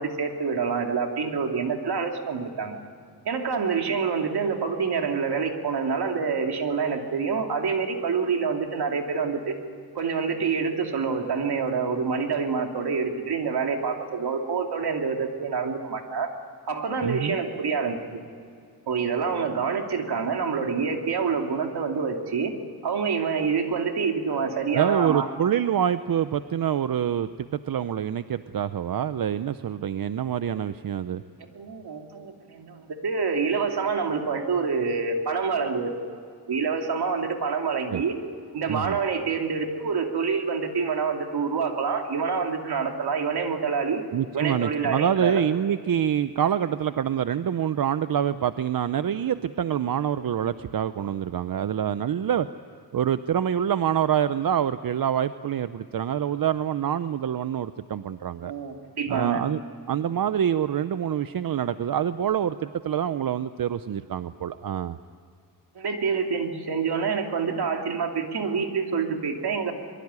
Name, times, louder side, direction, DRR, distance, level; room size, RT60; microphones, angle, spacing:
voice 1, 0.0-2.8 3.2-9.5 9.9-16.3 16.7-18.2 18.9-22.5 22.8-25.3 30.5-30.6 31.5-36.2 36.5-38.1 38.5-44.0 44.3-45.4 58.4-59.4 65.7-69.7, right 5 dB, 75° right, 3 dB, 2.9 m, -27 dB
voice 2, 17.0-17.4 24.7-31.2 37.9-38.0 38.7-39.0 44.1-52.5 52.9-58.5 59.1-59.6 59.9-65.0, right 9 dB, 60° right, 12 dB, 0.7 m, -26 dB
23.0 x 23.0 x 9.7 m, 2.4 s
wide cardioid pair, 105°, 39 cm